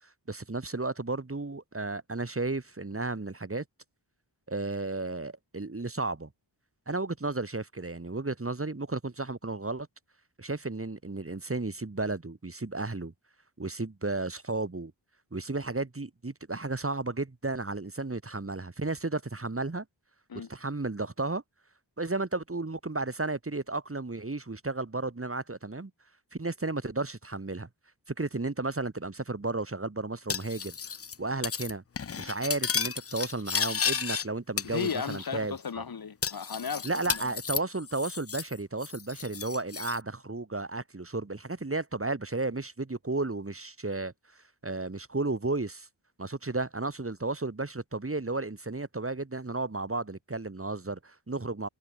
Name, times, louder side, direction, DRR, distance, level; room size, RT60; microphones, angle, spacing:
voice 1, 0.3-3.6 4.5-6.3 6.9-9.9 10.4-13.1 13.6-14.9 15.3-19.8 20.5-21.4 22.0-25.9 26.3-27.7 28.1-30.8 31.2-31.8 32.2-35.6 36.8-44.1 44.6-45.9 46.2-51.7, right 3 dB, 30° right, 3.0 m, -33 dB
Cutlery silverware, 30.3-31.2 31.4-31.7 32.0-34.3 34.6-35.3 35.6-35.7 36.2-38.5 38.8-40.0, left 6 dB, 30° left, 0.6 m, -33 dB
voice 2, 34.6-37.4, left 6 dB, 50° left, 1.4 m, -35 dB
wide cardioid pair, 65°, 45 cm